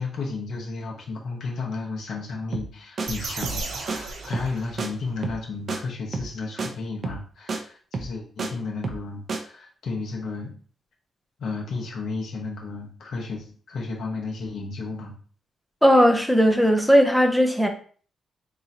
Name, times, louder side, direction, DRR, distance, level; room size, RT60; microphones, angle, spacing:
voice 1, 0.0-10.5 11.4-15.1, left 3 dB, 65° left, -1 dB, 1.1 m, -33 dB
sound 1, 2.5-2.7 3.0-3.1 3.4-3.6 3.9-4.0 4.3-4.5 4.8-4.9 5.2-5.4 5.7-5.8 6.1-6.3 6.6-6.7 7.0-7.2 7.5-7.6 7.9-8.5 8.8-9.0 9.3-9.4, right 4 dB, 45° right, 0.6 m, -30 dB
sound 2, 3.1-5.2, right 3 dB, 75° right, 0.9 m, -35 dB
voice 2, 15.8-17.7, equal, ahead, 4 dB, 0.6 m, -17 dB
3.7 x 3.0 x 2.8 m, 0.43 s
cardioid pair, 130°, 0 cm